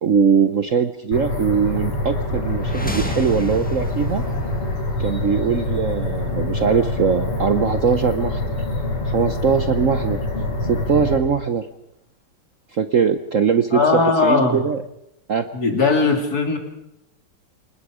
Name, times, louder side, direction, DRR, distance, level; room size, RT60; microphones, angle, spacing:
voice 1, 0.0-4.2 5.0-8.6 9.0-10.2 10.6-11.7 12.7-14.8 15.3-15.5, right 6 dB, 60° right, 9 dB, 0.8 m, -21 dB
sound 1, 1.1-11.2, left 2 dB, 90° left, 5.1 m, -25 dB
sound 2, 2.6-6.6, equal, 5° left, 1.4 m, -34 dB
voice 2, 13.7-14.6 15.5-16.6, left 4 dB, 40° left, 4 dB, 3.5 m, -18 dB
28.5 x 19.5 x 5.0 m, 0.82 s
omnidirectional pair, 2.4 m